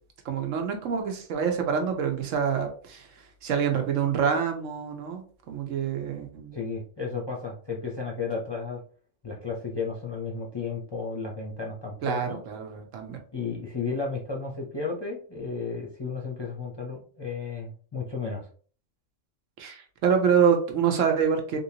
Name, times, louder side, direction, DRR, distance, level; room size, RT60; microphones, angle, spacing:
voice 1, 0.2-3.1 3.4-6.6 12.0-13.2 19.6-21.6, right 7 dB, 80° right, 4 dB, 1.1 m, -26 dB
voice 2, 6.5-8.8 9.2-12.4 13.3-18.4, left 4 dB, 30° left, -2 dB, 0.5 m, -33 dB
3.5 x 2.7 x 2.7 m, 0.43 s
omnidirectional pair, 1.3 m